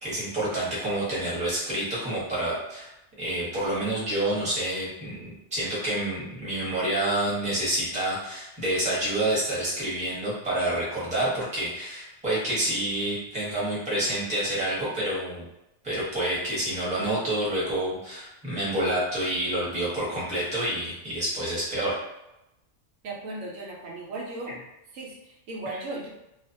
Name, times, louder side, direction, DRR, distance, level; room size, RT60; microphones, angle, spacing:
voice 1, 0.0-2.9 3.2-15.4 15.8-22.0 25.7-25.8, right 1 dB, 5° right, -8 dB, 0.8 m, -28 dB
voice 2, 23.0-24.6 24.9-26.1, right 2 dB, 85° right, -1 dB, 1.0 m, -36 dB
2.4 x 2.1 x 2.6 m, 0.89 s
omnidirectional pair, 1.3 m